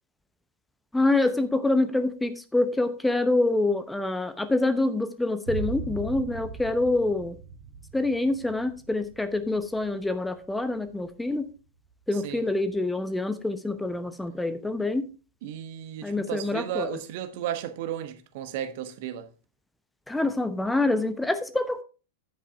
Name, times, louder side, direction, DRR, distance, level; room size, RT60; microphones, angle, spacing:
voice 1, 0.9-7.4 7.9-11.5 12.1-15.1 16.0-16.9 20.1-21.8, left 2 dB, 5° left, 0.8 m, -26 dB
sound 1, 5.5-12.8, right 4 dB, 65° right, 2.8 m, -40 dB
voice 2, 12.1-12.4 15.4-19.3, right 10 dB, 50° right, 1.2 m, -34 dB
10.0 x 8.5 x 3.5 m
figure-of-eight pair, 90°, 0 cm